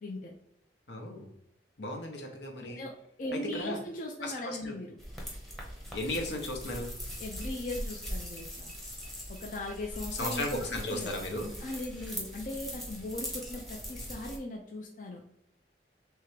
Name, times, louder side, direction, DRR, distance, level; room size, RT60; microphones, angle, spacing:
voice 1, 0.0-0.3 2.8-2.9 3.2-5.0 7.2-8.7 9.3-10.6 10.9-11.1 11.6-15.2, left 1 dB, 45° left, 0 dB, 0.5 m, -39 dB
voice 2, 0.9-1.3 1.8-2.8 3.3-3.8 4.2-4.7 5.9-6.9 10.2-11.5, left 1 dB, 75° left, 2 dB, 0.9 m, -35 dB
sound 1, 5.0-14.4, equal, ahead, 0.7 m, -41 dB
3.6 x 3.2 x 3.2 m, 0.77 s
head